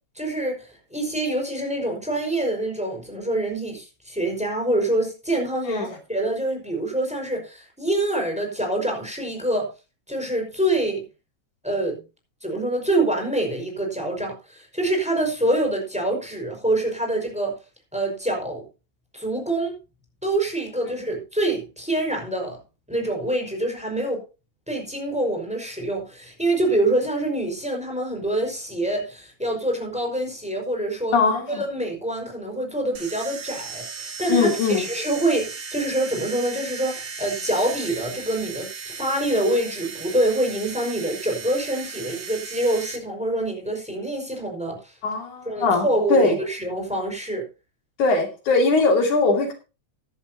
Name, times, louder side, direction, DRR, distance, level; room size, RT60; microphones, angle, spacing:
voice 1, 0.1-9.7 10.1-11.0 11.6-12.0 12.4-17.5 17.9-18.6 19.1-19.7 20.2-22.6 22.9-24.2 24.7-31.2 31.5-44.9 45.4-47.4, right 1 dB, ahead, 5.1 m, -25 dB
voice 2, 31.1-31.6 34.3-34.9 45.0-46.4 48.0-49.5, left 3 dB, 75° left, 3.9 m, -20 dB
sound 1, 32.9-43.0, right 5 dB, 45° right, 2.0 m, -36 dB
15.5 x 11.0 x 2.8 m
omnidirectional pair, 3.5 m